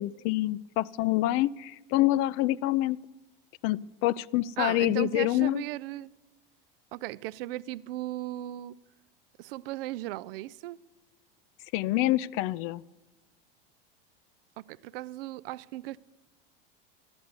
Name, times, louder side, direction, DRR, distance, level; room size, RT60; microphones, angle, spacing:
voice 1, 0.0-3.0 3.6-5.6 11.7-12.8, left 15 dB, 50° left, 0.4 m, -26 dB
voice 2, 4.6-6.1 6.9-8.8 9.4-10.8 14.6-16.0, right 16 dB, 75° right, 0.5 m, -36 dB
12.5 x 6.7 x 9.5 m
hypercardioid pair, 105°, 29 cm